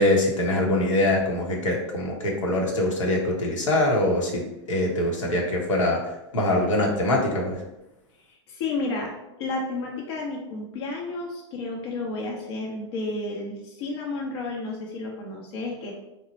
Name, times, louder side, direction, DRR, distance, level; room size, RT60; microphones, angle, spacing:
voice 1, 0.0-4.4 4.7-7.6, left 1 dB, 85° left, -1 dB, 1.0 m, -23 dB
voice 2, 8.3-9.1 9.4-15.9, left 3 dB, 55° left, -1 dB, 0.8 m, -31 dB
3.2 x 2.1 x 3.9 m, 0.92 s
hypercardioid pair, 120°, 16 cm